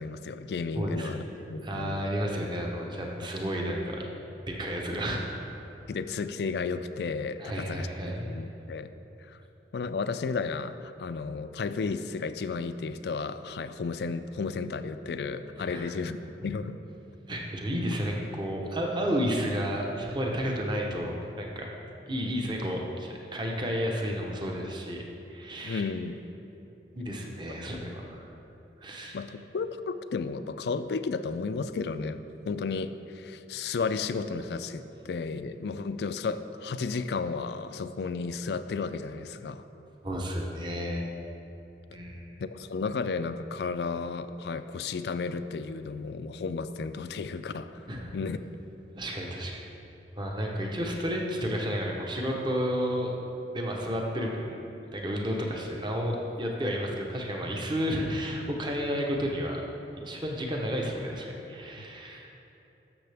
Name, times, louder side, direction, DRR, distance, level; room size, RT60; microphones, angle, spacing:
voice 1, 0.0-2.1 5.9-8.9 9.2-9.4 9.7-16.8 25.6-26.2 29.1-39.6 42.4-47.9 48.1-48.4, left 4 dB, 70° left, 11 dB, 0.4 m, -33 dB
voice 2, 0.7-1.1 1.6-4.0 4.5-5.2 7.4-8.3 15.6-15.9 17.3-21.7 22.1-25.0 25.3-25.8 26.9-28.3 28.8-29.2 40.0-41.1 41.9-42.4 47.9-48.1 49.0-49.6 50.2-53.1 53.5-54.5 54.9-59.6 60.0-62.3, equal, 25° right, 0 dB, 0.9 m, -31 dB
13.0 x 6.6 x 3.4 m, 3.0 s
head